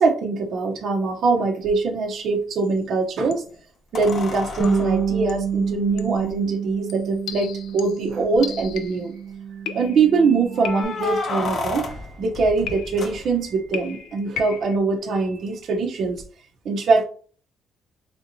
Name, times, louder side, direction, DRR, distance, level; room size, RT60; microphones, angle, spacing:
voice 1, 0.0-3.4 3.9-9.1 9.7-16.2 16.6-17.0, right 4 dB, 65° right, 1 dB, 0.7 m, -22 dB
sound 1, 1.6-1.7 3.9-6.3 7.3-7.4 7.7-7.8 8.3-8.8 10.5-13.7 16.2-16.3, left 3 dB, 50° left, 0.8 m, -32 dB
sound 2, 2.6-2.8 3.3-3.6 4.1-5.0 5.3-5.6 6.0-6.2 6.9-9.1 9.7-10.2 10.6-11.2 12.7-13.2 13.7-14.8, left 9 dB, 85° left, 0.3 m, -37 dB
Bass guitar, 4.6-10.8, right 7 dB, 15° right, 0.8 m, -28 dB
3.3 x 3.0 x 2.6 m, 0.41 s
cardioid pair, 105°, 0 cm